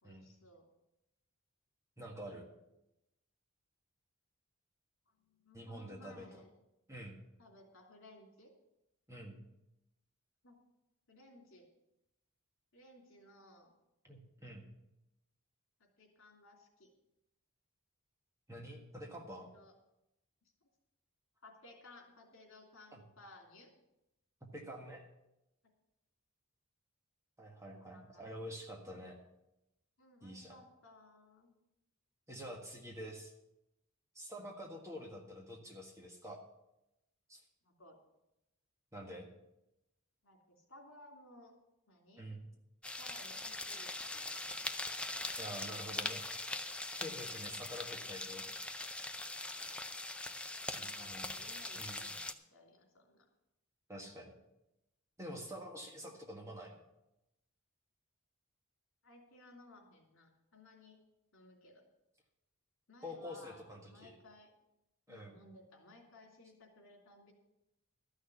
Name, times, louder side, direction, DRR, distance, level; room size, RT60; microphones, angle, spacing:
voice 1, 0.0-0.6 5.1-6.5 7.4-8.5 10.4-10.6 11.1-11.7 12.7-13.7 15.8-16.9 19.3-19.7 20.6-20.7 21.4-23.7 27.9-28.2 30.0-31.6 37.6-37.9 40.2-41.5 41.9-42.3 43.0-44.6 49.5-49.8 50.7-53.2 59.0-61.0 61.3-61.8 62.9-64.5 65.1-67.3, left 1 dB, 60° left, 1 dB, 3.0 m, -59 dB
voice 2, 2.0-2.5 5.5-6.4 6.9-7.2 9.1-9.4 14.0-14.7 18.5-19.5 22.9-23.0 24.5-25.1 27.4-29.2 30.2-30.5 32.3-33.3 34.1-36.4 37.3-37.4 38.9-39.3 42.2-42.5 45.4-46.2 46.9-48.5 50.8-51.3 51.7-52.0 53.9-54.3 55.2-56.8 63.0-64.1 65.1-65.4, equal, 15° right, 1 dB, 1.6 m, -47 dB
sound 1, 42.8-52.3, left 2 dB, 5° left, 0.5 m, -42 dB
13.0 x 6.5 x 8.2 m, 0.90 s
head